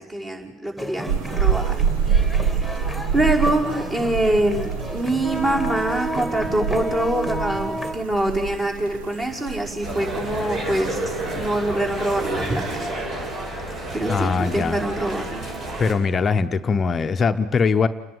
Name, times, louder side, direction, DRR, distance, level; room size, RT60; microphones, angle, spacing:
voice 1, 0.0-1.8 2.5-2.7 3.1-13.0 13.9-15.5, right 1 dB, 25° right, 5.3 m, -24 dB
sound 1, 0.8-7.9, right 1 dB, 5° right, 2.7 m, -32 dB
sound 2, 1.1-12.9, right 7 dB, 80° right, 1.1 m, -27 dB
sound 3, 9.8-15.9, right 2 dB, 50° right, 7.1 m, -30 dB
voice 2, 14.1-14.8 15.8-17.9, left 5 dB, 30° left, 0.9 m, -21 dB
29.5 x 11.0 x 9.6 m
hypercardioid pair, 85°, 0 cm